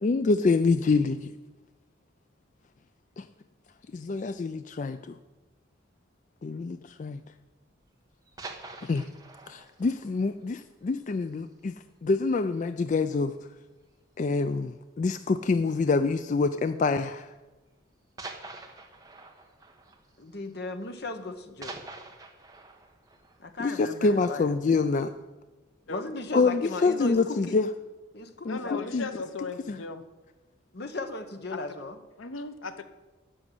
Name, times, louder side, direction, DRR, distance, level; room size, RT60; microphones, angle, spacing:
voice 1, 0.0-1.3 3.2-3.3 3.9-5.1 6.4-7.2 8.8-9.1 9.5-11.7 12.0-13.3 14.2-17.3 23.6-25.1 26.3-27.7 28.5-28.6 28.9-29.0, left 4 dB, 40° left, 10 dB, 0.3 m, -26 dB
sound 1, 8.1-11.7 12.0-12.1 12.5-12.7 13.0-13.1 13.9-14.4 15.6-15.8 16.7-16.8 18.2-21.0 21.2-24.4 24.8-24.9, right 3 dB, 20° right, 1.1 m, -46 dB
voice 2, 20.2-21.8 23.4-24.5 25.9-27.6 28.1-28.9 30.7-32.0, left 2 dB, 55° left, 7 dB, 1.0 m, -37 dB
voice 3, 28.5-30.1 31.5-31.6 32.2-32.8, left 3 dB, 90° left, 10 dB, 0.8 m, -37 dB
11.0 x 6.3 x 9.2 m, 1.2 s
head